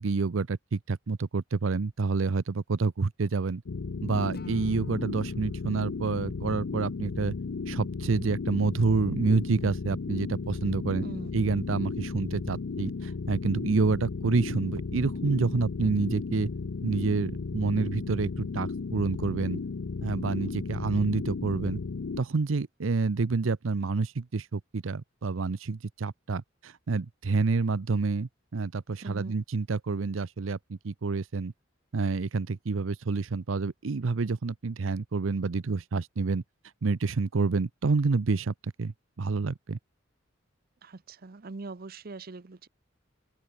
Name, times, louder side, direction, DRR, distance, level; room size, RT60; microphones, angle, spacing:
voice 1, 0.0-3.6 4.0-7.3 7.7-11.1 11.3-16.5 16.8-19.6 20.0-21.8 22.2-31.5 31.9-36.4 36.8-39.8, right 4 dB, 90° right, 0.6 m, -28 dB
sound 1, 3.7-22.2, left 4 dB, 80° left, 0.6 m, -35 dB
Acoustic guitar / Strum, 4.3-7.5, left 1 dB, 55° left, 7.8 m, -52 dB
voice 2, 29.0-29.3 40.8-42.7, right 3 dB, 50° right, 0.7 m, -42 dB
open air
head